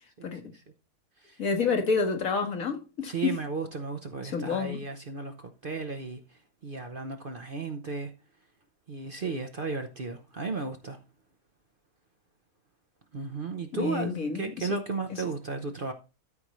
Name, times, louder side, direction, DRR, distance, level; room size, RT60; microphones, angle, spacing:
voice 1, 0.2-0.5 1.2-1.4 3.1-6.2 6.6-8.1 8.9-11.0 13.1-15.9, right 3 dB, 45° right, 0.8 m, -34 dB
voice 2, 1.4-3.4 4.2-4.8 13.7-14.7, left 5 dB, 60° left, 1.8 m, -29 dB
13.5 x 5.3 x 3.1 m
omnidirectional pair, 1.6 m